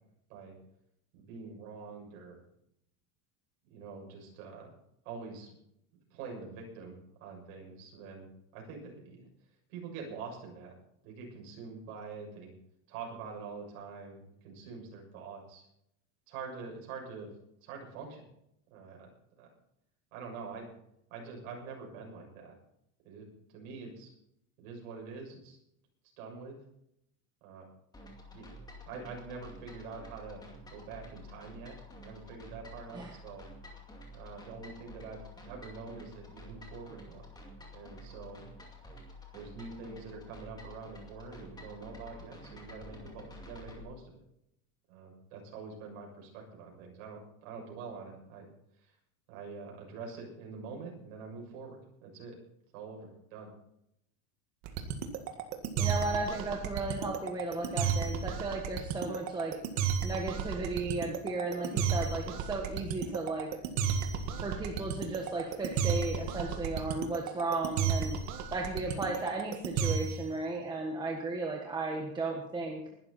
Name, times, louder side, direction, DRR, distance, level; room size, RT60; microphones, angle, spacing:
voice 1, 1.1-2.4 3.7-4.7 5.0-5.5 6.1-9.3 9.7-10.8 11.0-12.5 12.9-15.7 16.3-17.3 17.6-18.3 18.7-19.1 19.4-19.5 20.1-20.7 21.1-22.5 23.0-24.1 24.6-25.6 26.2-26.6 27.4-27.7 28.3-28.5 28.9-33.5 34.1-37.3 37.7-38.4 38.8-38.9 39.3-44.2 44.9-48.5 48.8-48.9 49.3-52.4 52.7-53.5, right 4 dB, 60° right, 0 dB, 7.1 m, -45 dB
sound 1, 27.9-43.8, left 1 dB, 10° left, 2.3 m, -50 dB
sound 2, 54.7-70.3, right 7 dB, 40° right, 1.8 m, -32 dB
voice 2, 55.8-59.5 60.0-63.5 64.4-68.2 68.5-73.0, right 3 dB, 10° right, 1 dB, 1.4 m, -35 dB
20.5 x 12.5 x 4.2 m, 0.77 s
supercardioid pair, 175°, 44 cm